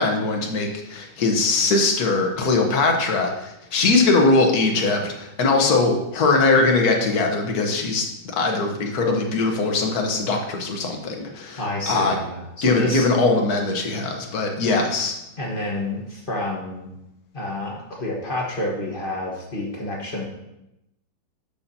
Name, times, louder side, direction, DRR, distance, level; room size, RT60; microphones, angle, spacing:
voice 1, 0.0-12.2 12.6-15.2, left 3 dB, 55° left, 2 dB, 1.6 m, -21 dB
voice 2, 11.6-13.1 15.4-17.0 17.3-20.3, left 2 dB, 30° left, -2 dB, 1.3 m, -29 dB
11.5 x 6.9 x 2.8 m, 0.87 s
omnidirectional pair, 2.2 m